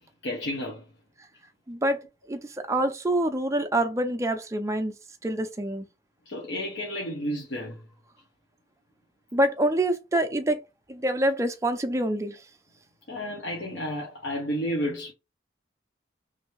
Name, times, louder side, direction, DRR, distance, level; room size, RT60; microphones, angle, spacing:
voice 1, 0.2-0.8 6.3-7.8 13.1-15.1, equal, 75° left, 0.7 m, -31 dB
voice 2, 1.7-2.0 2.3-4.9 5.2-5.9 9.3-10.6 10.9-12.4, right 1 dB, 15° right, 0.4 m, -26 dB
3.2 x 2.6 x 3.1 m
head